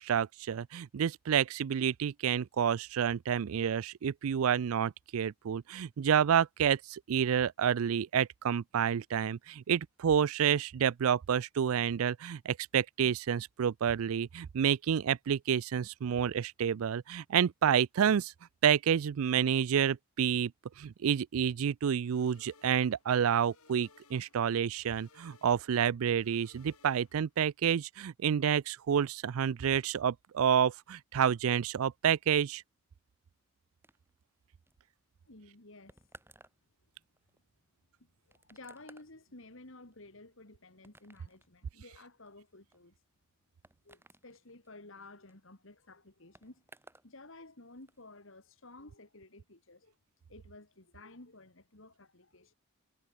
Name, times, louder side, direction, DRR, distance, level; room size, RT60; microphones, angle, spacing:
voice 1, 0.0-18.3 18.6-20.5 20.8-32.6, right 8 dB, 75° right, 0.4 m, -29 dB
sound 1, 22.0-27.4, left 4 dB, 85° left, 7.3 m, -63 dB
sound 2, 33.8-47.1 47.4-48.0, right 2 dB, 10° right, 2.4 m, -62 dB
voice 2, 35.2-36.0 38.3-43.0 43.8-46.6 47.0-49.9 50.3-52.5, left 2 dB, 60° left, 2.6 m, -53 dB
head